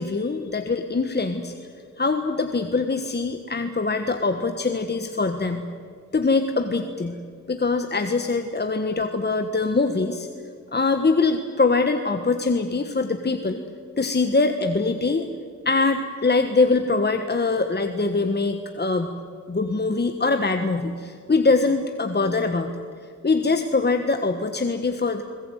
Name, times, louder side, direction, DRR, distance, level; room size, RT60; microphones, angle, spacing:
voice 1, 0.0-1.6 2.0-5.7 6.1-7.2 7.5-10.3 10.7-13.6 14.0-15.3 15.6-19.2 19.5-22.7 23.2-25.2, left 3 dB, 35° left, 7 dB, 1.4 m, -23 dB
22.0 x 20.5 x 9.2 m, 2.2 s
cardioid pair, 80°, 31 cm